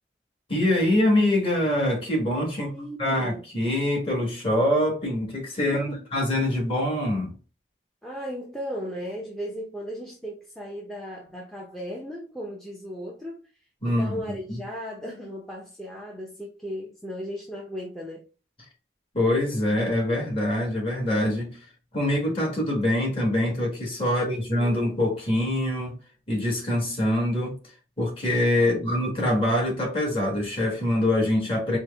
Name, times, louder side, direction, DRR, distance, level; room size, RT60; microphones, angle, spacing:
voice 1, 0.5-2.7 3.0-7.3 13.8-14.1 14.5-14.6 19.1-21.6 21.9-26.0 26.3-27.6 28.0-31.8, left 1 dB, 30° left, 1.6 m, -24 dB
voice 2, 2.6-3.4 5.6-6.1 8.0-13.4 13.8-18.3 24.1-24.8 28.6-28.8, equal, ahead, 0.6 m, -36 dB
4.5 x 2.1 x 3.3 m
head